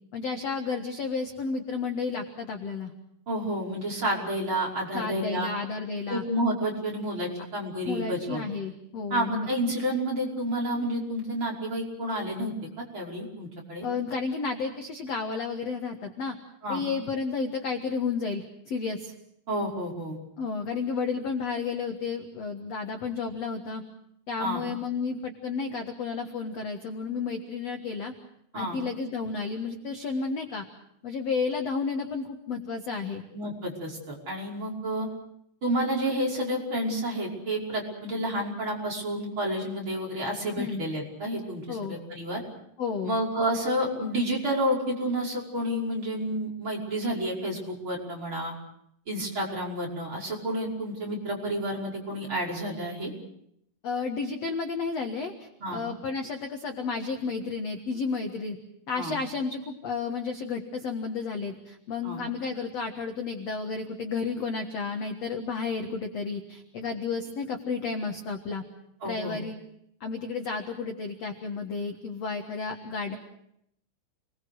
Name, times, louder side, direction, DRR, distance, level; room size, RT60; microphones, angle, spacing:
voice 1, 0.1-2.9 4.9-6.2 7.8-9.5 13.8-16.3 16.7-19.1 20.4-23.8 24.3-28.1 28.5-30.6 31.0-33.2 40.6-40.8 41.7-42.0 42.8-43.2 53.8-58.6 58.9-68.6 69.0-69.6 70.0-73.2, left 4 dB, 65° left, 4 dB, 1.6 m, -32 dB
voice 2, 3.3-5.5 6.1-8.4 9.1-12.5 12.9-13.9 16.6-16.8 19.5-20.2 24.4-24.6 28.5-28.8 33.3-35.1 35.6-42.4 43.0-48.5 49.1-53.1 55.6-55.8 59.0-59.1 62.0-62.2 69.0-69.4, right 1 dB, 25° right, -3 dB, 5.9 m, -30 dB
29.0 x 21.5 x 6.4 m, 0.73 s
omnidirectional pair, 5.3 m